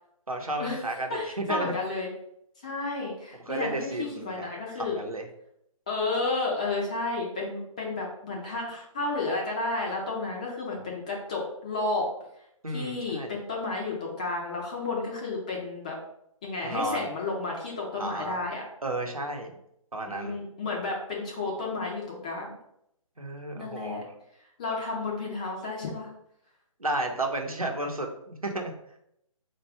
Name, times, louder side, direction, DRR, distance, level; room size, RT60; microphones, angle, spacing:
voice 1, 0.3-1.7 3.5-4.5 4.8-5.3 12.6-13.4 16.6-17.1 18.0-18.4 18.8-19.6 19.9-20.4 23.2-24.0 26.8-28.7, right 2 dB, 85° right, 2 dB, 0.9 m, -32 dB
voice 2, 1.1-2.1 2.6-5.0 5.9-12.1 12.7-16.0 16.4-18.6 20.1-22.6 23.5-24.0 24.6-26.1, left 3 dB, 15° left, -2 dB, 0.3 m, -32 dB
4.4 x 2.4 x 4.7 m, 0.76 s
figure-of-eight pair, 140°, 18 cm